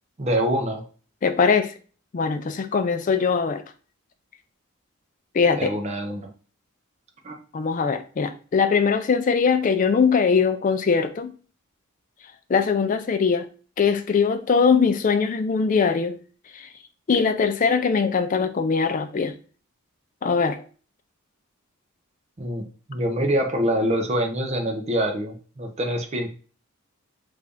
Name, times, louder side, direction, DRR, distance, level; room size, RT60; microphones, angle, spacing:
voice 1, 0.2-0.8 5.5-6.3 7.2-7.4 22.4-22.6 22.9-26.3, equal, 30° right, 0.5 m, -25 dB
voice 2, 1.2-1.7 2.1-3.6 5.3-5.7 7.5-11.3 12.5-13.5 13.8-16.2 16.5-16.7 17.1-19.3 20.2-20.6, left 5 dB, 35° left, 0.3 m, -21 dB
3.3 x 2.5 x 3.5 m
head